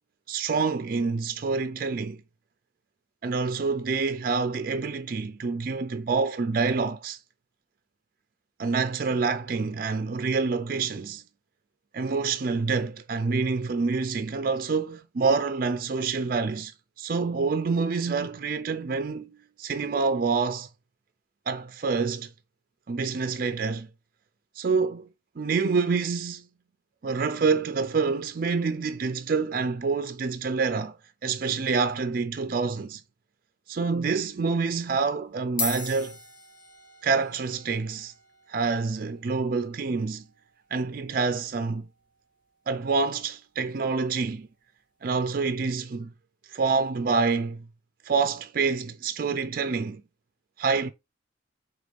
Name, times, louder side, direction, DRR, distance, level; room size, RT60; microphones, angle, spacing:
voice 1, 0.3-2.2 3.2-7.2 8.6-11.2 11.9-16.7 17.0-20.7 21.5-22.3 22.9-23.9 24.6-25.1 25.4-26.5 27.0-31.0 31.2-33.0 33.7-36.2 37.0-38.1 38.5-40.2 40.7-41.9 42.7-44.5 45.0-46.1 46.5-47.7 48.0-50.0 50.6-50.9, right 4 dB, 45° right, 0.4 m, -27 dB
sound 1, 34.0-34.2 35.1-35.2 35.4-44.1, left 3 dB, 45° left, 0.9 m, -41 dB
5.1 x 3.5 x 2.5 m
head